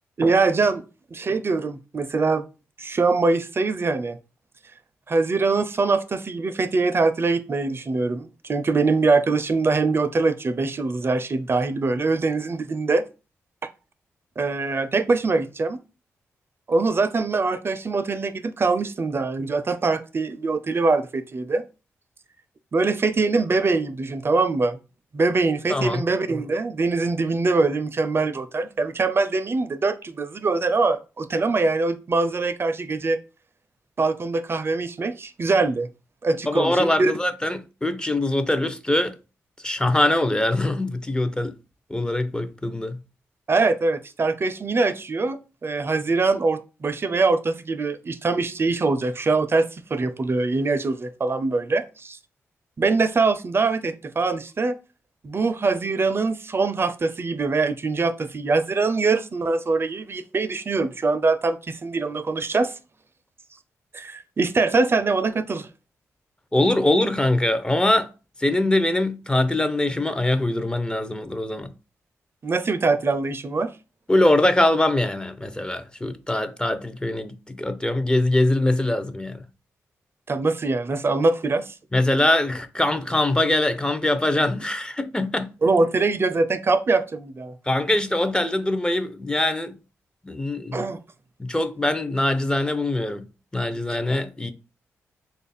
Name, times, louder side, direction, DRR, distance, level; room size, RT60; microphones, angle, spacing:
voice 1, 0.2-0.8 1.1-2.4 2.8-4.2 5.1-13.0 14.4-15.8 16.7-21.6 22.7-24.8 25.1-33.2 34.0-35.9 36.2-37.1 43.5-52.2 52.8-54.7 55.2-62.7 63.9-65.7 72.4-73.7 80.3-81.7 85.6-87.5 90.7-91.0, right 3 dB, 45° right, 0.4 m, -23 dB
voice 2, 25.7-26.0 36.5-39.2 39.6-41.6 41.9-43.0 66.5-68.1 68.4-71.7 74.1-79.4 81.9-85.6 87.7-89.8 90.2-90.8 91.4-93.3 93.5-94.5, left 1 dB, 15° left, 0.5 m, -23 dB
3.2 x 2.4 x 4.1 m
supercardioid pair, 50°, 6 cm